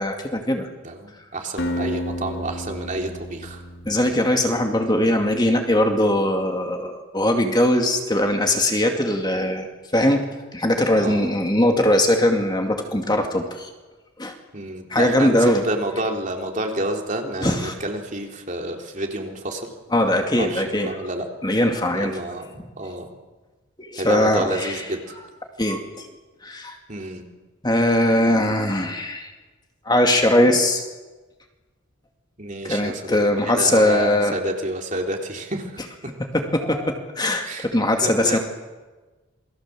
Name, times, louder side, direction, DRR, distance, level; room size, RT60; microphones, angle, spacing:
voice 1, 0.0-0.7 3.8-9.7 9.9-10.3 10.5-13.7 14.2-14.3 14.9-15.6 17.4-17.7 19.9-21.0 21.4-22.1 23.8-24.8 25.6-26.1 26.4-26.8 27.6-29.3 29.9-30.8 32.6-34.4 36.3-38.4, left 1 dB, 20° left, 3 dB, 2.3 m, -20 dB
voice 2, 0.8-3.6 11.0-11.3 14.5-19.7 20.3-21.3 21.9-23.1 24.0-25.2 26.9-27.3 32.4-36.1 37.4-37.7 38.0-38.4, right 1 dB, 35° right, 2 dB, 3.4 m, -29 dB
Acoustic guitar, 1.6-4.6, equal, 55° left, 2.4 m, -31 dB
28.0 x 22.0 x 7.7 m, 1.2 s
head